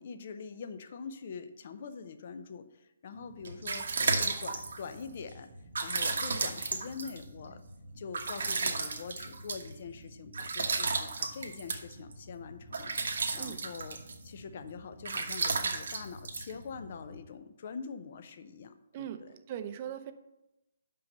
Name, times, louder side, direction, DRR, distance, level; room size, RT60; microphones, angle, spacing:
voice 1, 0.0-3.9 4.1-5.5 5.8-7.6 8.0-14.0 14.2-19.3, left 6 dB, 50° left, 10 dB, 0.6 m, -44 dB
sound 1, 3.2-17.2, right 4 dB, 75° right, 1.2 m, -35 dB
voice 2, 18.9-20.1, right 9 dB, 35° right, 9 dB, 0.6 m, -40 dB
5.5 x 5.4 x 6.6 m, 0.94 s
hypercardioid pair, 155°, 0 cm